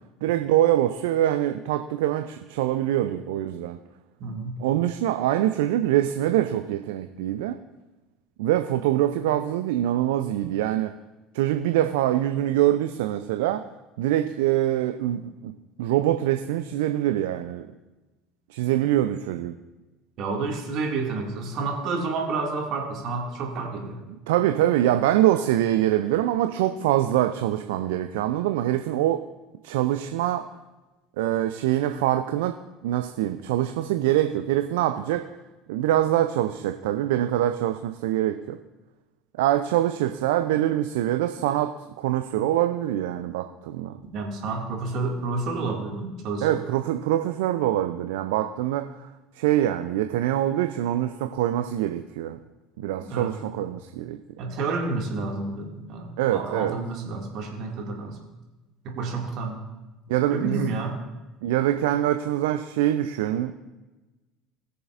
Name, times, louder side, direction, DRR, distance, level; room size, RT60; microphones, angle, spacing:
voice 1, 0.2-3.8 4.6-7.6 8.4-10.9 11.3-13.6 14.0-15.5 15.8-17.6 18.5-19.5 24.1-29.2 29.6-30.5 31.2-32.5 32.8-35.3 35.7-38.6 39.4-44.0 46.4-49.1 49.3-52.4 52.8-54.2 56.2-56.8 60.1-60.7 61.4-63.5, right 13 dB, 70° right, 8 dB, 0.5 m, -24 dB
voice 2, 4.2-4.6 20.2-24.0 44.1-46.6 53.0-53.3 54.4-58.2 58.8-59.6 60.3-61.0, right 3 dB, 55° right, 1 dB, 2.2 m, -30 dB
20.0 x 6.8 x 2.5 m, 1.1 s
figure-of-eight pair, 65°, 0 cm